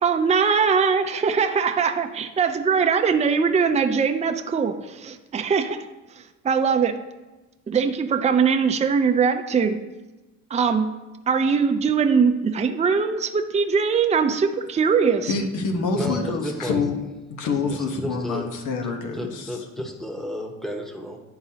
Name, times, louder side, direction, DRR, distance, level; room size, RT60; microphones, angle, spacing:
voice 1, 0.0-5.9 6.2-7.0 7.7-9.8 10.5-10.9 11.3-15.3, right 6 dB, 25° right, 7 dB, 0.5 m, -21 dB
voice 2, 15.3-16.9 17.3-19.3, left 4 dB, 85° left, 4 dB, 1.1 m, -26 dB
voice 3, 15.9-16.8 17.7-18.5 18.8-21.2, equal, ahead, 2 dB, 1.1 m, -33 dB
10.5 x 3.9 x 2.8 m, 1.1 s
cardioid pair, 90°, 30 cm